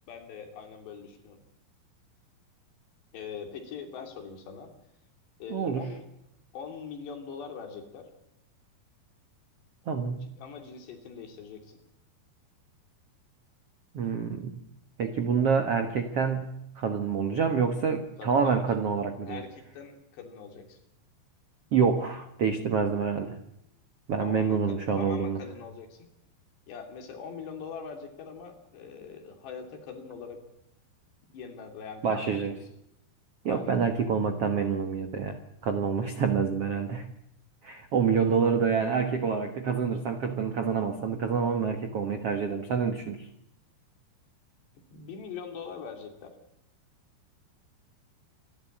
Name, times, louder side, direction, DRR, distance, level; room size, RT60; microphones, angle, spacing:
voice 1, 0.1-1.4 3.1-4.7 5.4-6.0 6.5-8.1 10.2-11.8 18.2-18.6 19.3-20.8 24.2-26.1 26.7-30.4 31.3-32.6 33.5-33.8 44.9-46.3, left 6 dB, 70° left, 5 dB, 5.1 m, -42 dB
voice 2, 5.5-5.9 9.9-10.3 13.9-14.6 15.0-19.4 21.7-23.4 24.1-25.4 32.0-32.6 33.4-37.1 37.6-43.3, right 6 dB, 80° right, 7 dB, 1.3 m, -27 dB
27.0 x 12.5 x 8.7 m, 0.82 s
omnidirectional pair, 5.2 m